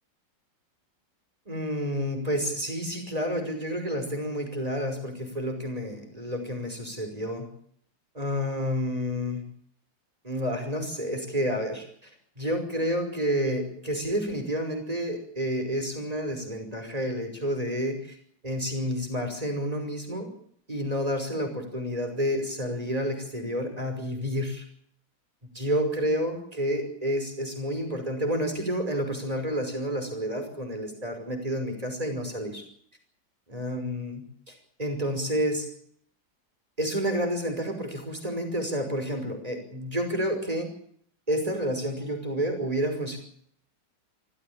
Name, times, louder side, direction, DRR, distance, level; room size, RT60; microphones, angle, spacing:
voice 1, 1.5-7.5 8.1-9.4 10.2-12.1 12.4-18.2 18.4-20.3 20.7-24.6 25.5-32.6 33.5-35.7 36.8-40.7 41.3-43.2, equal, 20° right, 5 dB, 5.6 m, -30 dB
25.0 x 15.0 x 8.9 m, 0.64 s
omnidirectional pair, 2.0 m